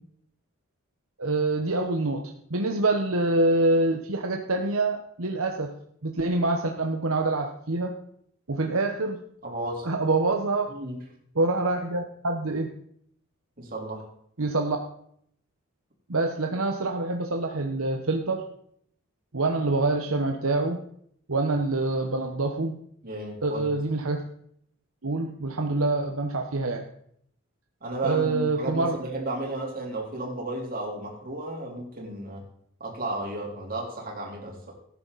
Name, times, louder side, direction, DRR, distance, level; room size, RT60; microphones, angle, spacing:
voice 1, 1.2-5.7 6.0-7.9 8.5-9.2 9.8-10.7 11.3-12.7 14.4-14.8 16.1-18.4 19.3-20.8 21.3-22.8 23.4-24.2 25.0-26.8 28.0-29.0, right 2 dB, 75° right, 3 dB, 1.1 m, -26 dB
voice 2, 9.4-9.9 10.7-11.0 13.6-14.1 23.0-23.7 27.8-32.5 32.8-34.7, right 2 dB, 40° right, -2 dB, 3.8 m, -33 dB
17.0 x 9.7 x 4.1 m, 0.68 s
head